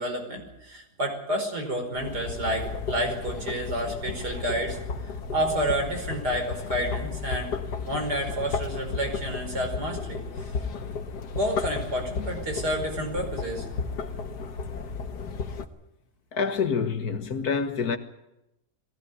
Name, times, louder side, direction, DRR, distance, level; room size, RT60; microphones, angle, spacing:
voice 1, 0.0-4.8 5.3-7.5 7.8-10.5 11.3-13.6, equal, 85° right, 5.7 m, -30 dB
sound 1, 1.9-15.6, left 5 dB, 90° left, 2.0 m, -34 dB
voice 2, 16.3-18.0, left 5 dB, 70° left, 2.1 m, -27 dB
21.5 x 16.5 x 9.5 m
omnidirectional pair, 1.7 m